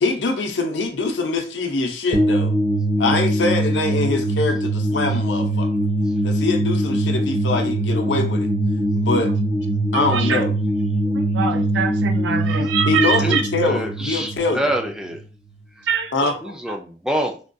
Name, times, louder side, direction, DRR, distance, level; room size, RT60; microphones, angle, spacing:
voice 1, 0.0-2.5 3.0-5.7 6.2-8.5 9.0-9.3 9.9-10.5 12.9-14.6 16.1-16.3, left 3 dB, 85° left, 5 dB, 0.6 m, -23 dB
sound 1, 2.1-15.2, right 1 dB, 65° right, 1.0 m, -22 dB
voice 2, 9.9-10.5 11.1-13.4 15.8-16.4, right 6 dB, 80° right, 6 dB, 0.4 m, -24 dB
voice 3, 13.6-15.2 15.8-15.9 16.4-17.4, right 1 dB, 5° right, 3 dB, 0.3 m, -26 dB
3.4 x 2.2 x 2.6 m, 0.37 s
head